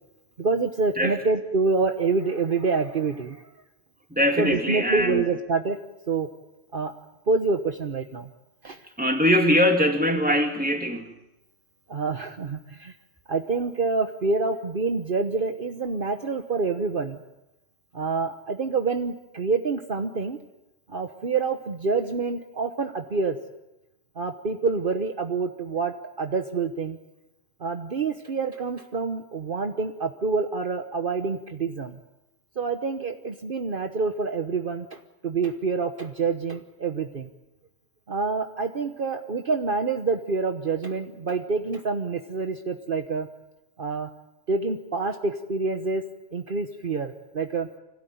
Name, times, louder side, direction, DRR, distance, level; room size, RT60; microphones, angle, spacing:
voice 1, 0.4-3.5 4.4-5.8 6.1-6.3 6.7-6.9 7.3-8.3 8.6-8.8 11.9-12.9 13.3-17.2 17.9-20.4 20.9-23.4 24.2-27.0 27.6-32.0 32.6-37.3 38.1-43.3 43.8-44.1 44.5-46.0 46.3-47.7, right 4 dB, 50° right, 5 dB, 1.3 m, -27 dB
voice 2, 4.1-5.2 9.0-11.1, equal, 5° right, 3 dB, 2.5 m, -22 dB
26.0 x 17.0 x 9.4 m, 0.97 s
omnidirectional pair, 1.2 m